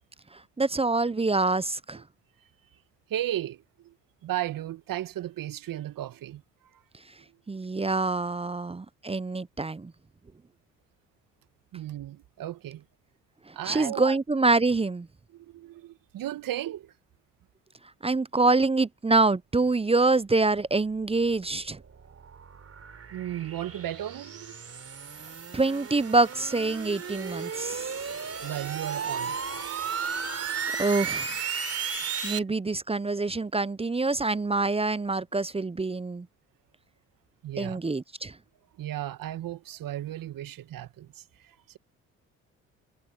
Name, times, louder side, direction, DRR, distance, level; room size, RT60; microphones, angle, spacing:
voice 1, 0.6-2.0 7.5-9.9 13.5-15.1 18.0-21.8 25.5-27.9 30.8-31.3 32.2-36.3 37.6-38.4, right 3 dB, 15° right, 0.8 m, -25 dB
voice 2, 3.1-3.9 4.2-6.4 6.7-6.8 11.7-12.8 13.5-14.2 15.3-16.9 23.1-24.6 28.4-30.8 32.3-32.4 37.4-37.8 38.8-41.8, right 13 dB, 60° right, 2.1 m, -35 dB
sound 1, 21.2-32.4, right 6 dB, 40° right, 3.7 m, -35 dB
hypercardioid pair, 50°, 38 cm